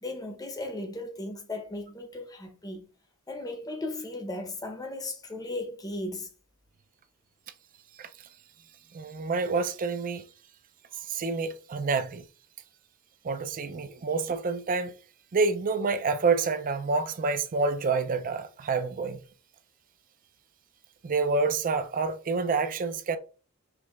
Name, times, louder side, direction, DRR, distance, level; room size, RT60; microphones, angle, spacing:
voice 1, 0.0-2.8 3.3-6.3, left 2 dB, 15° left, 0.7 m, -36 dB
voice 2, 8.9-10.2 11.1-12.2 13.2-14.9 15.3-19.2 21.0-23.2, right 4 dB, 40° right, 0.4 m, -28 dB
4.6 x 3.1 x 2.3 m
head